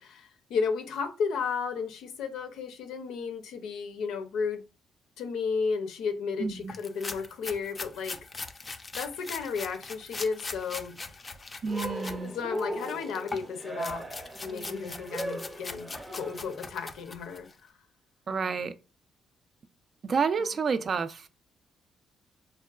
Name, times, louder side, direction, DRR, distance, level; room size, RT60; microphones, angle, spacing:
voice 1, 0.0-4.6 5.2-8.2 9.0-11.0 12.2-14.1 14.4-17.5 18.3-18.5 20.4-20.5, left 5 dB, 85° left, 0.5 m, -33 dB
voice 2, 6.4-6.7 11.6-12.3 18.3-18.8 20.0-21.3, right 5 dB, 50° right, 0.3 m, -29 dB
sound 1, 6.7-12.2 12.5-17.5, left 3 dB, 30° left, 0.3 m, -41 dB
Cheering, 11.7-16.6, right 1 dB, 15° right, 0.6 m, -38 dB
3.5 x 2.2 x 2.3 m
cardioid pair, 90°, 0 cm